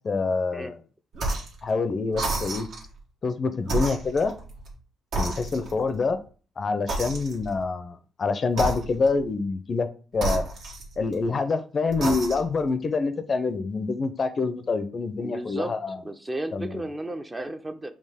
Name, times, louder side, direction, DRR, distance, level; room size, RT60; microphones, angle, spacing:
voice 1, 0.0-0.8 1.6-2.7 3.2-4.3 5.2-6.2 6.6-10.4 11.0-16.0 16.5-16.7, left 4 dB, 40° left, 10 dB, 0.5 m, -26 dB
sound 1, 1.1-1.6 2.1-2.9 3.6-4.8 5.1-5.9 6.9-7.6 8.5-9.2 10.1-11.3 11.9-12.6, right 2 dB, 70° right, 1.2 m, -31 dB
voice 2, 15.2-17.9, right 1 dB, 20° right, 8 dB, 0.5 m, -34 dB
4.4 x 2.9 x 3.5 m, 0.39 s
cardioid pair, 90°, 0 cm